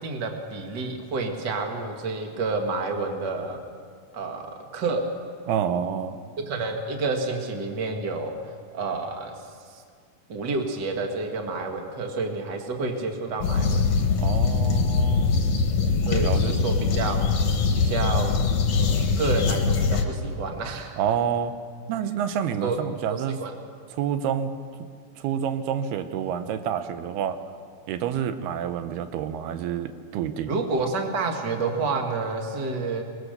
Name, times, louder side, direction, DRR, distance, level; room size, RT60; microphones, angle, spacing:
voice 1, 0.0-3.6 4.1-4.5 4.7-5.0 6.5-8.3 8.7-9.3 9.7-9.8 10.3-13.8 16.1-17.2 17.8-18.3 18.8-21.0 22.6-22.8 23.1-23.5 30.5-33.0, right 3 dB, 40° right, 3 dB, 1.8 m, -29 dB
voice 2, 5.5-6.2 14.2-15.4 16.0-16.4 21.0-21.5 21.9-23.4 23.9-24.5 25.2-27.4 27.9-30.5, right 8 dB, 85° right, 9 dB, 2.9 m, -28 dB
sound 1, 13.4-20.0, left 4 dB, 55° left, 2.1 m, -22 dB
23.0 x 21.0 x 6.7 m, 2.1 s
omnidirectional pair, 4.4 m